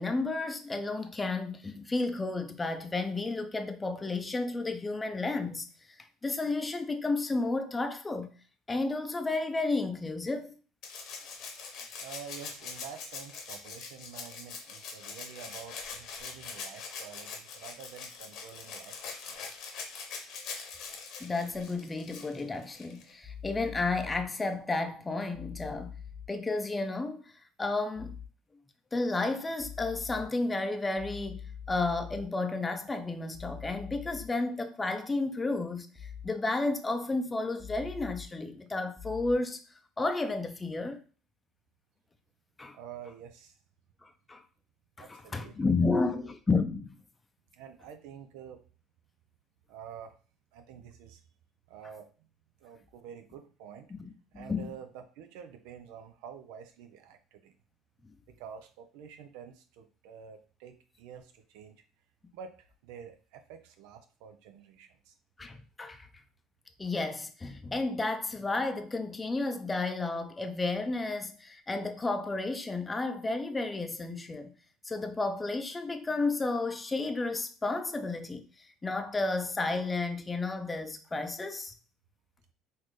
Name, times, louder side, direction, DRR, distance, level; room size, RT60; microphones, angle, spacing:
voice 1, 0.0-5.7 6.2-8.3 8.7-10.5 21.2-25.9 26.3-27.3 27.6-28.2 28.9-31.4 31.7-39.6 40.0-41.0 42.6-42.8 44.0-44.4 45.0-47.0 53.9-54.7 65.4-66.1 66.8-74.5 74.8-81.7, left 3 dB, 20° left, 0.5 m, -32 dB
Rattle (instrument), 10.8-23.1 24.5-24.6, left 5 dB, 65° left, 1.0 m, -43 dB
voice 2, 12.0-19.4 42.7-43.6 45.0-46.3 47.5-48.6 49.7-50.2 50.5-51.2 51.7-52.3 52.6-53.9 54.3-57.5 58.3-61.8 62.3-65.1, right 7 dB, 75° right, 0.5 m, -48 dB
sound 1, 23.2-24.2 25.3-26.3 28.0-28.3 29.6-30.3 31.0-32.2 33.3-34.3 36.0-36.3 37.6-38.3 39.0-39.3, left 7 dB, 10° right, 0.9 m, -43 dB
4.0 x 2.6 x 3.1 m
hypercardioid pair, 75°, 0 cm